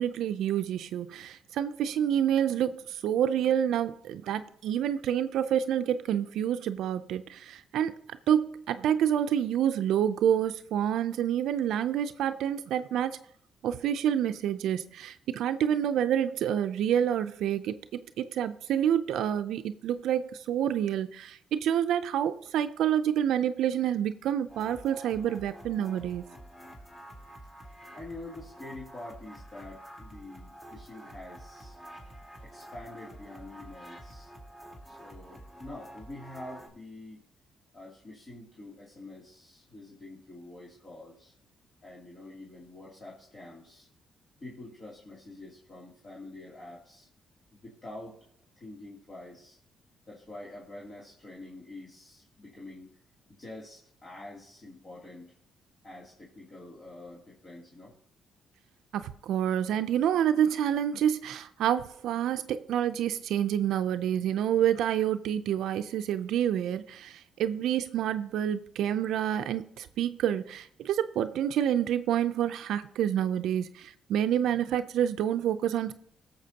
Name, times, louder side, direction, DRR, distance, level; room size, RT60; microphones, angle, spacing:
voice 1, 0.0-8.0 8.3-13.2 13.6-17.8 18.2-26.2 58.9-75.9, right 10 dB, 80° right, 0.5 m, -28 dB
sound 1, 24.5-36.7, equal, 15° left, 2.4 m, -48 dB
voice 2, 27.9-31.8 32.4-34.3 34.8-37.2 37.7-41.3 41.8-43.9 44.4-47.1 47.5-48.2 48.6-49.6 50.1-52.9 53.4-55.3 55.8-57.9, left 2 dB, 35° left, 2.8 m, -46 dB
17.5 x 7.1 x 2.8 m
cardioid pair, 90°, 0 cm